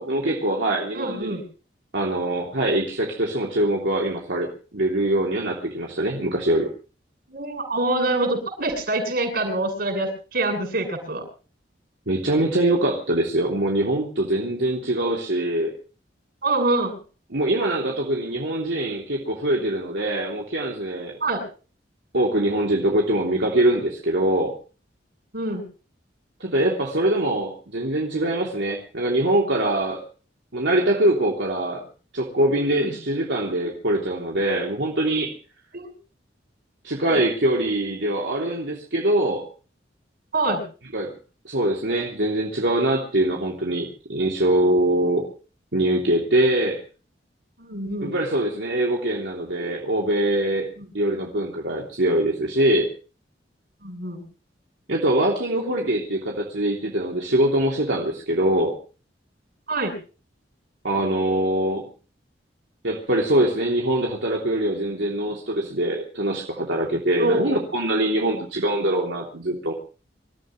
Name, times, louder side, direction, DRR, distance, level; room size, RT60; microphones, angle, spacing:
voice 1, 0.0-1.4 1.9-6.7 12.1-15.7 17.3-21.2 22.1-24.5 26.4-30.0 30.5-31.8 32.1-35.3 36.8-39.4 40.9-41.1 41.4-45.3 45.7-46.8 48.0-50.7 50.9-52.9 54.9-58.7 60.8-61.9 62.8-69.7, right 1 dB, 85° right, -1 dB, 3.2 m, -23 dB
voice 2, 0.9-1.4 7.3-11.2 16.4-17.0 21.2-21.4 25.3-25.6 32.8-32.9 35.7-35.9 37.1-37.2 40.3-40.6 47.6-48.1 50.8-50.9 53.8-54.2 59.7-60.0 67.2-67.6, right 2 dB, 60° right, 4 dB, 8.0 m, -25 dB
27.0 x 14.5 x 3.2 m, 0.37 s
head